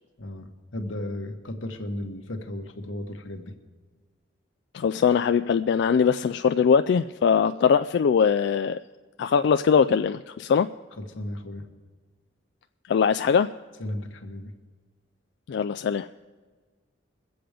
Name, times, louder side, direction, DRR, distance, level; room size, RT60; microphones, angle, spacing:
voice 1, 0.2-3.6 11.0-11.6 13.8-14.5, left 1 dB, 90° left, 5 dB, 1.3 m, -35 dB
voice 2, 4.7-8.8 9.2-10.7 12.9-13.5 15.5-16.1, left 6 dB, 60° left, 9 dB, 0.3 m, -21 dB
22.0 x 7.8 x 5.0 m, 1.4 s
head